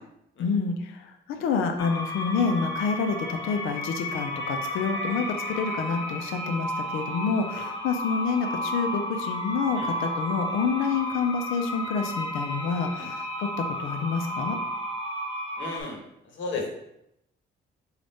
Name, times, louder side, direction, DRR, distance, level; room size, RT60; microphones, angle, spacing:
voice 1, 0.4-13.5 13.8-14.6, left 5 dB, 90° left, 6 dB, 0.5 m, -28 dB
sound 1, 1.8-15.8, equal, 20° left, 0.8 m, -32 dB
voice 2, 15.6-16.0 16.3-16.7, left 3 dB, 70° left, 1 dB, 0.9 m, -34 dB
3.9 x 2.4 x 3.4 m, 0.80 s
cardioid pair, 90°, 20 cm